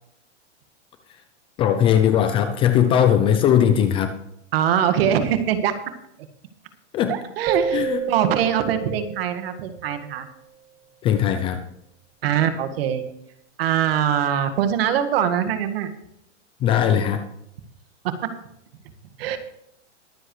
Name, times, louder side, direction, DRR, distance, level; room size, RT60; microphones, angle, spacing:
voice 1, 1.6-4.2 6.9-7.2 7.7-8.0 11.0-11.6 16.6-17.2, left 9 dB, 15° left, 8 dB, 0.5 m, -19 dB
voice 2, 4.5-5.7 7.1-10.3 12.2-13.0 13.6-15.9 18.0-18.1 19.2-19.4, right 9 dB, 50° right, 9 dB, 1.8 m, -22 dB
sound 1, 7.5-10.1, right 6 dB, 20° right, 1.0 m, -29 dB
22.5 x 7.8 x 3.2 m, 0.76 s
hypercardioid pair, 150°, 36 cm